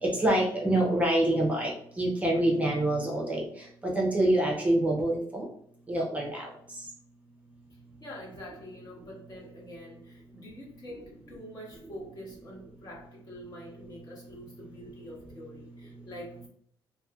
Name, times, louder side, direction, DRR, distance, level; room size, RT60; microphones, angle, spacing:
voice 1, 0.0-1.7 2.0-3.5 3.8-5.5 5.9-6.5, right 1 dB, 15° right, -2 dB, 0.6 m, -26 dB
voice 2, 8.0-16.5, equal, 40° left, -4 dB, 1.3 m, -45 dB
3.0 x 2.7 x 2.3 m, 0.65 s
cardioid pair, 125°, 10 cm